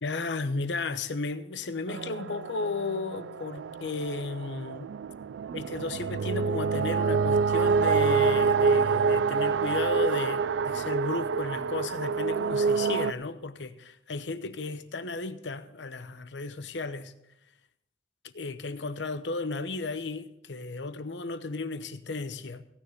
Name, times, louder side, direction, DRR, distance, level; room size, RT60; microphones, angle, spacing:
voice 1, 0.0-4.9 5.5-17.1 18.3-22.6, left 3 dB, 80° left, 0.9 m, -34 dB
sound 1, 1.9-13.1, right 5 dB, 90° right, 0.4 m, -27 dB
15.5 x 9.8 x 5.1 m
head